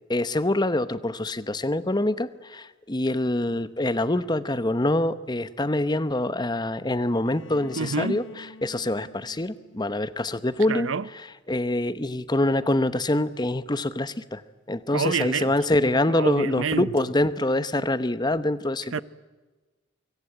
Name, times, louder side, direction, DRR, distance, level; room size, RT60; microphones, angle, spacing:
voice 1, 0.1-8.2 8.6-10.9 11.5-14.4 14.7-19.0, left 1 dB, 20° left, 0.9 m, -25 dB
Bowed string instrument, 7.2-11.1, left 2 dB, 70° left, 1.2 m, -49 dB
voice 2, 7.8-8.2 10.7-11.1 14.9-15.5 16.1-16.9 18.9-19.0, right 4 dB, 75° right, 0.7 m, -27 dB
24.5 x 23.5 x 8.9 m
head